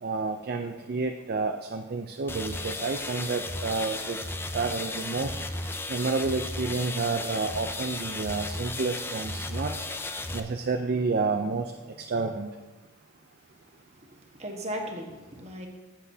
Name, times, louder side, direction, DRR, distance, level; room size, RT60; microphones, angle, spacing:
voice 1, 0.0-4.2 4.5-5.3 5.9-9.7 10.3-11.7 12.1-12.5, right 4 dB, 45° right, 6 dB, 0.4 m, -29 dB
sound 1, 2.3-10.4, left 2 dB, 10° left, 0.4 m, -34 dB
voice 2, 14.0-15.7, equal, 30° right, 2 dB, 1.3 m, -37 dB
14.0 x 8.1 x 2.8 m, 1.2 s
head